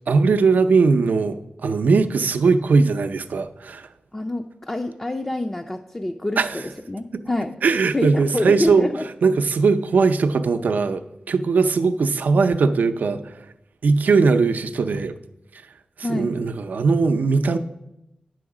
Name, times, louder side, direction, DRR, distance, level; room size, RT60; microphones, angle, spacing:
voice 1, 0.1-3.9 6.4-6.5 7.1-7.2 7.6-8.9 9.2-13.4 13.8-15.1 16.1-17.6, right 4 dB, 85° right, 9 dB, 0.5 m, -19 dB
voice 2, 4.1-7.6 7.9-9.1 16.0-16.3, left 1 dB, 20° left, 4 dB, 0.4 m, -27 dB
9.4 x 6.2 x 4.8 m, 0.88 s
wide cardioid pair, 120°, 3 cm